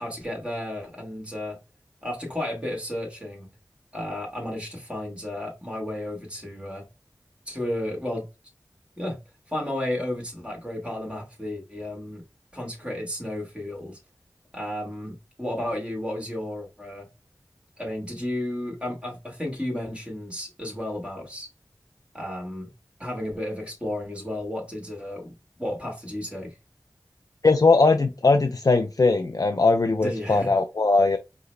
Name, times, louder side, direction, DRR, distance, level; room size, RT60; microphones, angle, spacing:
voice 1, 0.0-1.6 2.0-3.5 3.9-6.8 7.5-8.3 9.0-9.2 9.5-12.2 12.5-14.0 14.5-17.1 17.8-21.5 22.1-22.7 23.0-25.3 25.6-26.6 30.0-30.5, left 1 dB, 15° right, 1.5 m, -33 dB
voice 2, 27.4-31.2, left 3 dB, 50° left, 0.4 m, -20 dB
4.7 x 2.1 x 3.2 m
wide cardioid pair, 45°, 8 cm